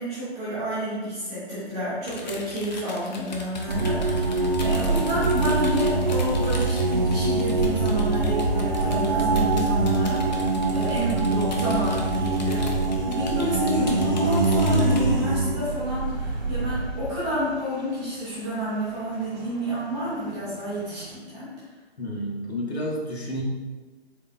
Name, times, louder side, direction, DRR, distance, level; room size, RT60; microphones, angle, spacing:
voice 1, 0.0-12.7 13.1-21.5, equal, 5° right, -12 dB, 0.5 m, -30 dB
sound 1, 2.0-15.0, left 2 dB, 45° left, 0.5 m, -40 dB
sound 2, 3.7-17.5 19.4-19.5 20.0-20.4 20.7-21.1, right 2 dB, 45° right, 0.7 m, -24 dB
voice 2, 22.0-23.4, equal, 80° left, -2 dB, 1.0 m, -30 dB
3.9 x 3.1 x 2.3 m, 1.3 s
figure-of-eight pair, 140°, 32 cm